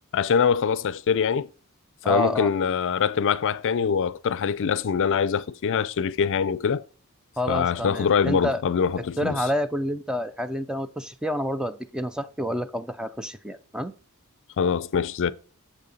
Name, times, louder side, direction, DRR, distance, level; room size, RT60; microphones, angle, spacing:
voice 1, 0.1-1.5 2.0-6.8 7.5-9.4 14.6-15.3, left 6 dB, 60° left, 0.4 m, -23 dB
voice 2, 2.0-2.5 7.4-8.6 9.2-13.9, equal, 5° right, 0.4 m, -28 dB
7.2 x 6.6 x 4.0 m
head